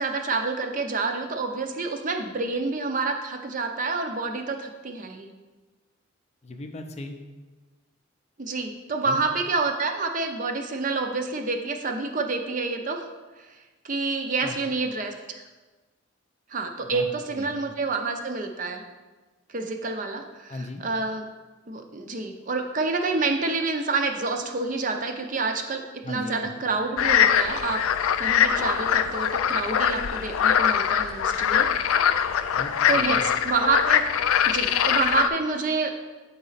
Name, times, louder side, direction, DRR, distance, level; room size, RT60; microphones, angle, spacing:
voice 1, 0.0-5.3 8.4-13.0 13.5-13.6 13.8-15.4 16.5-18.8 19.5-21.2 21.7-27.8 28.2-31.7 32.9-34.0 34.5-35.9, right 3 dB, 40° right, 5 dB, 0.5 m, -28 dB
voice 2, 6.4-7.2 9.0-9.2 14.4-14.6 16.8-17.0 17.4-17.6 20.5-20.8 26.0-26.6 32.5-33.2, left 2 dB, 30° left, 5 dB, 0.5 m, -37 dB
sound 1, 27.0-35.3, left 8 dB, 90° left, 0.4 m, -22 dB
8.4 x 4.0 x 4.0 m, 1.2 s
head